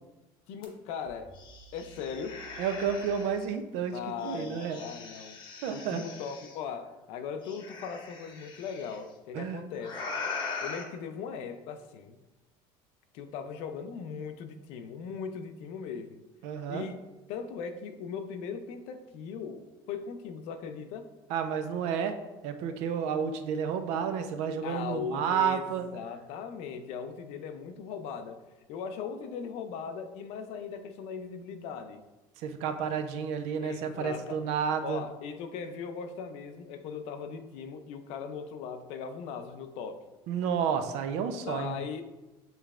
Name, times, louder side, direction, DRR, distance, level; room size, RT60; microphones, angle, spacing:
voice 1, 0.5-1.4 1.7-2.4 3.9-5.4 5.7-10.0 10.6-12.2 13.1-16.2 16.7-17.0 17.3-21.1 24.6-32.0 33.6-34.4 34.8-40.0 41.4-42.0, left 6 dB, 65° left, 8 dB, 0.5 m, -39 dB
sound 1, 0.6-0.7 1.1-3.5 4.2-6.6 7.4-9.0 9.8-10.8, left 4 dB, 40° left, 0.9 m, -41 dB
voice 2, 2.6-4.8 5.6-6.0 9.3-9.6 16.4-16.8 21.3-25.9 32.4-35.0 40.3-41.8, right 7 dB, 70° right, 8 dB, 0.5 m, -31 dB
6.6 x 3.2 x 2.4 m, 1.1 s
cardioid pair, 145°, 12 cm